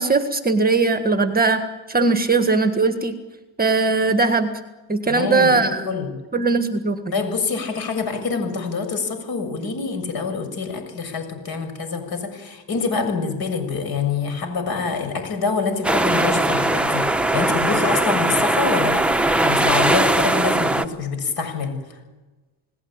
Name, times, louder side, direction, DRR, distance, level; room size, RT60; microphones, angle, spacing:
voice 1, 0.0-1.6 1.9-3.1 3.6-4.5 4.9-5.8 6.3-7.2, right 3 dB, 20° right, 7 dB, 1.7 m, -19 dB
voice 2, 5.0-6.2 7.1-17.1 17.3-19.0 19.4-21.8, left 4 dB, 55° left, 8 dB, 7.1 m, -25 dB
sound 1, 15.8-20.8, right 2 dB, 5° right, 1.1 m, -20 dB
29.5 x 19.0 x 9.0 m, 1.2 s
cardioid pair, 125°, 44 cm